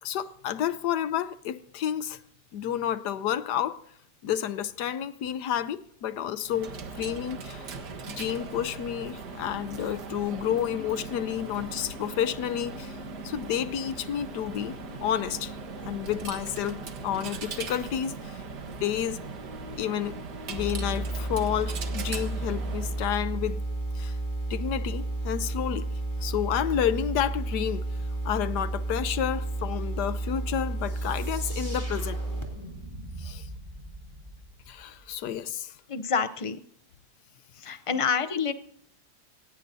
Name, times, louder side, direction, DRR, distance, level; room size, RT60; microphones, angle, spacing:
voice 1, 0.0-2.2 2.5-3.8 4.2-7.6 8.1-13.0 13.2-14.7 15.0-15.5 15.8-18.4 18.7-19.2 19.8-20.1 20.5-23.6 23.9-24.2 24.5-25.9 26.2-27.9 28.2-32.2 33.2-33.5 34.7-35.7, left 10 dB, 85° left, 1.4 m, -30 dB
Coin (dropping), 6.4-23.1, right 4 dB, 85° right, 2.1 m, -39 dB
sound 1, 20.6-32.4, right 2 dB, 15° left, 3.0 m, -32 dB
sound 2, 30.8-35.4, right 1 dB, 25° right, 4.7 m, -44 dB
voice 2, 35.9-36.6 37.6-38.5, left 6 dB, 55° left, 0.3 m, -27 dB
21.5 x 19.0 x 2.7 m
omnidirectional pair, 1.7 m